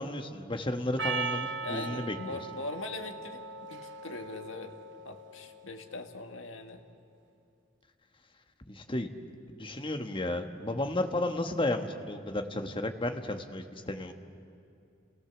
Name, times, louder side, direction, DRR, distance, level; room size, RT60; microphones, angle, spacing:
voice 1, 0.0-2.4 8.7-9.1 9.5-14.1, left 1 dB, 25° left, 6 dB, 1.3 m, -33 dB
Percussion, 1.0-5.6, right 4 dB, 65° right, 1.1 m, -38 dB
voice 2, 1.6-4.8 5.0-6.8, left 2 dB, 85° left, 5 dB, 1.7 m, -41 dB
29.5 x 18.0 x 7.1 m, 2.6 s
head